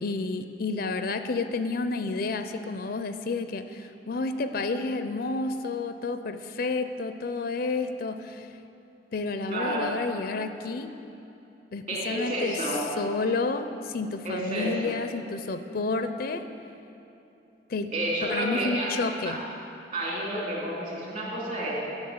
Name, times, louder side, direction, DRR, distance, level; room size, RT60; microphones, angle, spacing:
voice 1, 0.0-8.5 9.1-10.9 11.7-12.6 13.0-16.4 17.7-17.9 18.2-19.4, left 3 dB, 60° left, 9 dB, 0.5 m, -30 dB
voice 2, 9.5-9.9 11.9-12.8 14.2-14.9 17.9-18.9 19.2-19.4 19.9-21.8, right 1 dB, 50° right, -4 dB, 3.2 m, -30 dB
10.5 x 7.0 x 8.7 m, 2.9 s
head